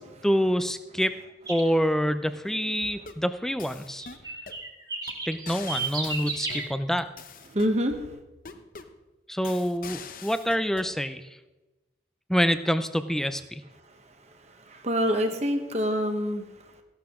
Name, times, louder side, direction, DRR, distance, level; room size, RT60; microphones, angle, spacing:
voice 1, 0.2-1.2 1.5-4.1 5.3-7.1 9.3-11.2 12.3-13.6, equal, ahead, 11 dB, 0.5 m, -26 dB
sound 1, 1.5-1.7 3.9-6.7, right 4 dB, 20° right, 1.5 m, -32 dB
sound 2, 2.8-3.3 3.6-4.6 5.1-5.2 5.5-7.8 8.4-9.0 9.4-10.9, left 5 dB, 50° left, 0.8 m, -43 dB
voice 2, 7.5-8.1 14.5-16.4, equal, 35° right, 6 dB, 1.1 m, -26 dB
14.5 x 11.5 x 3.7 m, 1.1 s
head